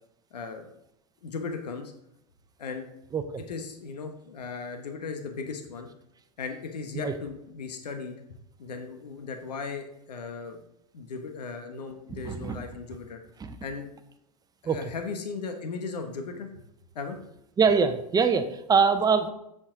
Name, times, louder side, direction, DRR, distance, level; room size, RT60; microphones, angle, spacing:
voice 1, 0.3-0.7 1.2-1.9 2.6-2.9 3.5-5.9 6.4-8.2 8.6-10.6 10.9-13.2 13.6-13.9 14.6-16.5 16.9-17.2, left 4 dB, 85° left, 5 dB, 1.2 m, -37 dB
voice 2, 12.2-12.6 13.4-13.6 14.7-14.8 17.6-19.3, right 5 dB, 20° right, 9 dB, 0.8 m, -23 dB
7.3 x 7.3 x 3.8 m, 0.81 s
hypercardioid pair, 105°, 20 cm